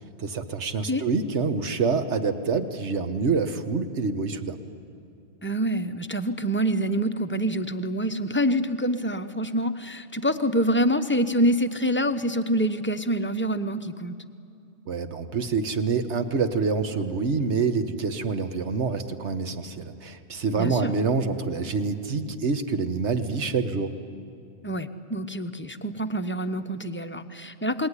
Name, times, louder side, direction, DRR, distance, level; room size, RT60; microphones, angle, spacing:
voice 1, 0.2-4.6 14.9-23.9, right 4 dB, 65° right, 8 dB, 1.6 m, -26 dB
voice 2, 5.4-14.1 20.6-20.9 24.6-27.9, equal, 10° left, 7 dB, 0.8 m, -26 dB
28.5 x 21.0 x 9.9 m, 2.6 s
omnidirectional pair, 1.3 m